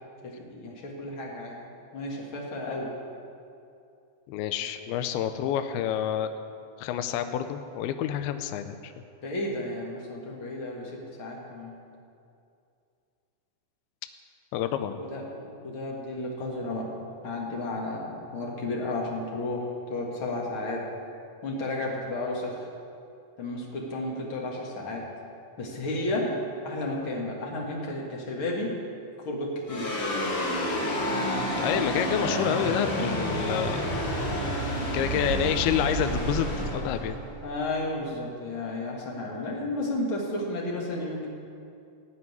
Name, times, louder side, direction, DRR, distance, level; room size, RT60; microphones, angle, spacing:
voice 1, 0.2-1.6 1.9-2.9 9.2-10.9 11.2-11.7 14.9-16.9 17.2-20.8 21.4-22.6 23.4-25.0 25.6-26.3 26.6-28.7 29.2-29.9 37.4-41.3, left 2 dB, 55° left, -2 dB, 1.5 m, -32 dB
voice 2, 4.3-6.3 6.8-8.9 14.5-15.0 31.6-34.1 34.9-37.2, left 9 dB, 85° left, 9 dB, 2.3 m, -28 dB
Large Machine Shutdown, 29.7-38.2, equal, 35° left, 3.5 m, -29 dB
15.5 x 5.5 x 9.5 m, 2.5 s
omnidirectional pair, 5.1 m